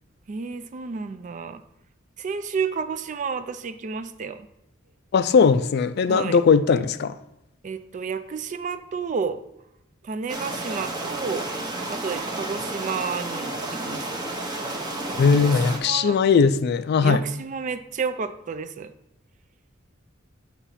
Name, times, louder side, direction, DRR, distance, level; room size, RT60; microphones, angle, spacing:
voice 1, 0.3-1.6 2.2-4.5 6.1-6.4 7.6-9.4 10.0-11.5 11.9-14.2 15.0-16.2 17.0-18.9, right 5 dB, 40° right, 0.3 m, -31 dB
voice 2, 5.1-7.2 15.2-17.2, left 5 dB, 50° left, 0.3 m, -19 dB
sound 1, 10.3-15.8, right 2 dB, 20° right, 0.8 m, -31 dB
8.2 x 3.0 x 5.6 m
head